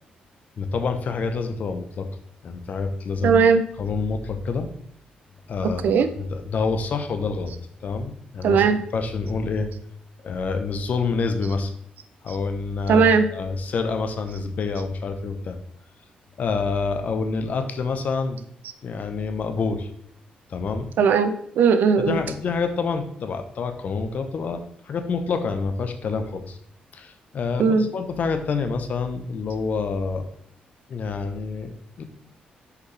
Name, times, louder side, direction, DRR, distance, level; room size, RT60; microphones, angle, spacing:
voice 1, 0.6-2.1 2.4-3.3 3.8-4.7 5.5-7.5 7.8-9.7 10.2-11.7 12.2-15.6 16.4-18.4 18.8-19.9 20.5-20.9 22.0-26.6 26.9-30.3 30.9-32.0, left 4 dB, 60° left, 8 dB, 0.9 m, -27 dB
voice 2, 3.2-3.6 5.6-6.1 8.4-8.8 12.9-13.3 21.0-22.2 27.6-27.9, right 6 dB, 75° right, 10 dB, 0.7 m, -18 dB
6.8 x 5.0 x 3.4 m, 0.69 s
cardioid pair, 85°, 3 cm